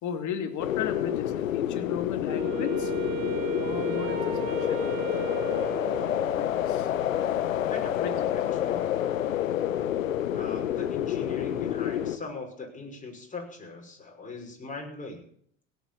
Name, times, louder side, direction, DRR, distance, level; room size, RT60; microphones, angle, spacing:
voice 1, 0.0-2.9 3.6-4.9 6.3-6.9 8.0-8.3, left 7 dB, 50° left, 7 dB, 2.6 m, -35 dB
sound 1, 0.6-12.2, left 11 dB, 85° left, 1.3 m, -28 dB
Wind instrument woodwind instrument, 2.3-6.7, right 9 dB, 75° right, 1.7 m, -36 dB
voice 2, 7.5-8.3 8.6-8.8 10.3-15.2, left 3 dB, 20° left, 1 dB, 5.8 m, -40 dB
17.5 x 8.4 x 8.6 m, 0.62 s
hypercardioid pair, 85°, 39 cm